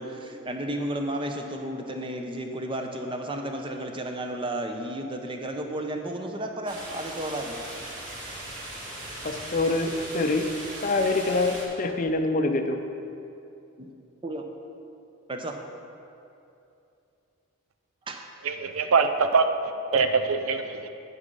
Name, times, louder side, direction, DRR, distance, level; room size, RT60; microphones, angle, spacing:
voice 1, 0.0-7.6 13.8-13.9 14.2-14.4 15.3-15.6 18.1-18.2 19.9-20.0, right 1 dB, 25° right, 4 dB, 0.7 m, -33 dB
sound 1, 6.7-11.6, right 1 dB, 40° right, 1.9 m, -38 dB
voice 2, 9.2-10.5 10.8-12.8, left 2 dB, 35° left, 6 dB, 0.5 m, -25 dB
voice 3, 18.4-19.4 19.9-20.9, right 5 dB, 70° right, 8 dB, 0.5 m, -23 dB
8.4 x 8.3 x 5.4 m, 2.7 s
head